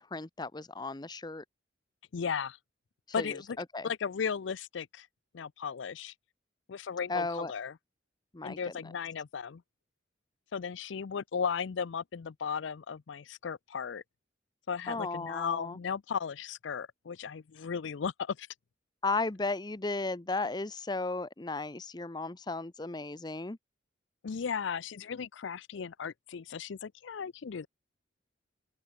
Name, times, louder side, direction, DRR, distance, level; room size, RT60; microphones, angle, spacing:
voice 1, 0.1-1.4 3.2-3.9 7.1-7.5 8.3-8.6 14.9-15.8 19.0-23.6, left 3 dB, 20° left, 0.7 m, -35 dB
voice 2, 2.1-2.6 3.1-3.6 3.8-5.1 5.3-6.1 6.7-7.8 8.4-9.6 10.5-14.0 14.7-18.5 24.2-27.7, left 6 dB, 70° left, 0.5 m, -36 dB
open air
head